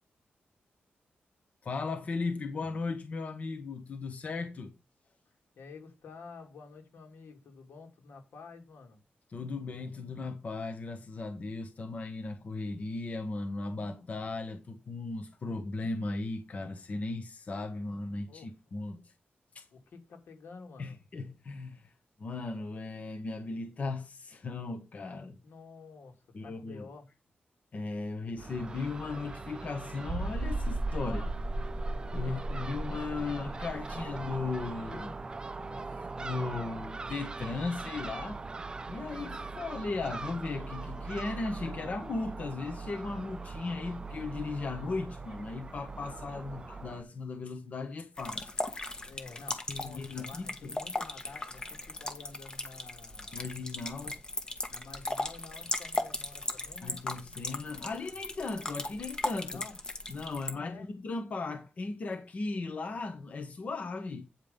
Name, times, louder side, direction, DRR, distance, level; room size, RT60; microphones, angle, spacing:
voice 1, 1.6-4.7 9.3-19.1 19.5-19.7 20.8-21.9 22.2-25.4 26.3-26.9 27.7-31.2 32.1-35.2 35.6-35.8 36.1-38.4 38.9-48.5 49.7-50.7 53.3-54.1 56.8-59.6 60.1-64.2, left 3 dB, 40° left, 1.3 m, -37 dB
voice 2, 5.2-9.0 18.3-18.5 19.7-21.0 25.4-27.0 31.0-31.4 32.2-32.5 46.5-46.7 49.0-53.5 54.1-54.2 54.7-57.1 59.5-59.8 60.5-60.9, left 4 dB, 85° left, 2.8 m, -50 dB
Crow / Gull seagull, 28.4-47.0, right 3 dB, 25° right, 0.4 m, -41 dB
Godzilla Stomp, 30.1-35.5 35.8-35.9 36.4-36.5, right 2 dB, ahead, 3.2 m, -36 dB
sound 1, 48.2-60.5, left 2 dB, 20° left, 1.4 m, -37 dB
9.3 x 5.4 x 5.3 m
wide cardioid pair, 180°, 4 cm